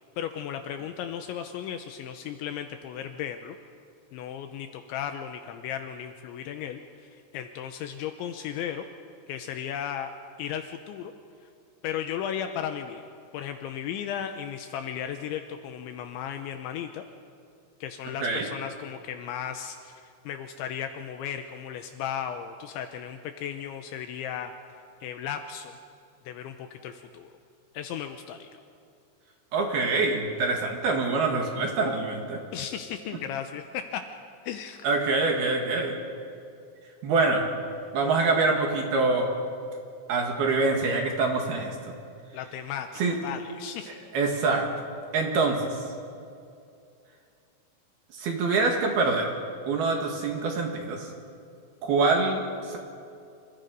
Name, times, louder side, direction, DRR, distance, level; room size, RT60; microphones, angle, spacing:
voice 1, 0.2-3.6 4.1-8.9 9.3-10.1 10.4-11.1 11.8-17.0 17.8-24.5 25.0-25.8 26.3-27.3 27.7-28.5 32.5-34.0 34.4-34.9 42.3-43.9, left 9 dB, 80° left, 6 dB, 3.1 m, -35 dB
voice 2, 29.5-32.4 34.8-35.9 37.0-37.5 37.9-39.3 40.1-41.8 43.0-43.2 44.1-44.7 45.1-45.7 48.1-49.3 49.7-51.1 51.8-52.4 52.7-52.8, right 3 dB, 60° right, 1 dB, 3.6 m, -25 dB
28.0 x 26.5 x 5.3 m, 2.5 s
omnidirectional pair, 5.6 m